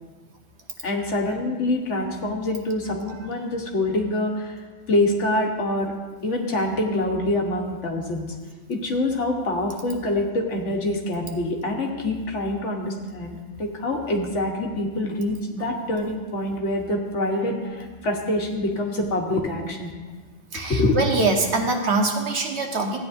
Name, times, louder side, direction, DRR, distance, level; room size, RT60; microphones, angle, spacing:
voice 1, 0.8-4.6 4.9-5.9 6.2-8.3 8.7-19.9 20.7-21.0, left 1 dB, 85° left, 1 dB, 1.5 m, -25 dB
voice 2, 20.5-23.0, right 3 dB, 65° right, 3 dB, 1.3 m, -23 dB
14.5 x 9.0 x 2.6 m, 1.4 s
omnidirectional pair, 1.2 m